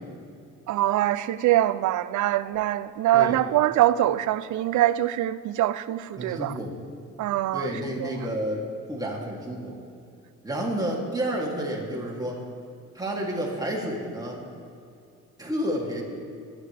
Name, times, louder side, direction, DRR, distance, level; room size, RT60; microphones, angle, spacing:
voice 1, 0.7-6.5 7.2-8.3, right 13 dB, 75° right, 0.5 m, -24 dB
voice 2, 6.2-6.7 7.5-9.8 10.4-12.4 12.9-14.4 15.4-16.0, equal, 10° right, 2.7 m, -30 dB
23.0 x 11.0 x 3.4 m
cardioid pair, 90°, 30 cm